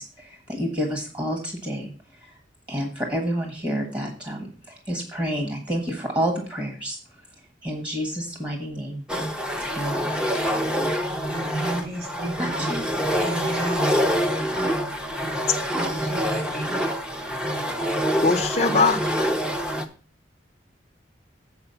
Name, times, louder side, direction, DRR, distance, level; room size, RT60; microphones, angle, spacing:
voice 1, 0.0-1.9 2.2-2.3 2.7-7.0 7.6-9.0 9.7-10.2 12.4-12.9, equal, 25° right, 2 dB, 1.4 m, -29 dB
sound 1, 9.1-19.9, equal, 5° right, 0.7 m, -26 dB
voice 2, 11.0-12.8 13.2-14.0 15.8-16.7, right 1 dB, 50° right, 1 dB, 4.0 m, -33 dB
voice 3, 18.2-19.3, left 4 dB, 35° left, 3 dB, 0.6 m, -21 dB
8.1 x 4.8 x 6.9 m, 0.40 s
head